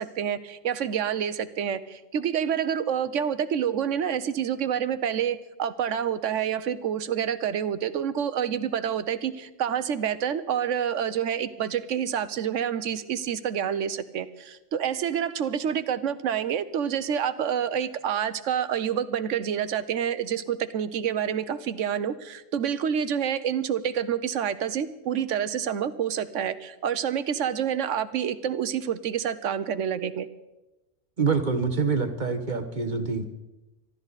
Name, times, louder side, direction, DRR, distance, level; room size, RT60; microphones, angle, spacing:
voice 1, 0.0-30.3, right 8 dB, 80° right, 13 dB, 1.2 m, -28 dB
voice 2, 31.2-33.2, right 5 dB, 40° right, 8 dB, 1.3 m, -26 dB
26.5 x 12.5 x 4.1 m, 1.0 s
omnidirectional pair, 1.3 m